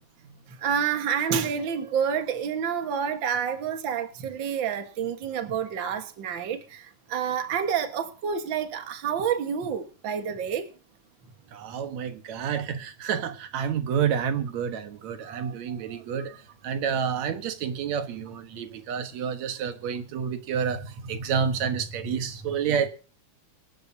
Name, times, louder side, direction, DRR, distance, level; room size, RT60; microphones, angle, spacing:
voice 1, 0.6-10.7 15.2-15.3 16.1-16.4, right 7 dB, 45° right, 1.7 m, -28 dB
voice 2, 11.5-16.3 16.6-22.9, right 7 dB, 60° right, 2.5 m, -29 dB
25.0 x 11.5 x 2.8 m
omnidirectional pair, 3.8 m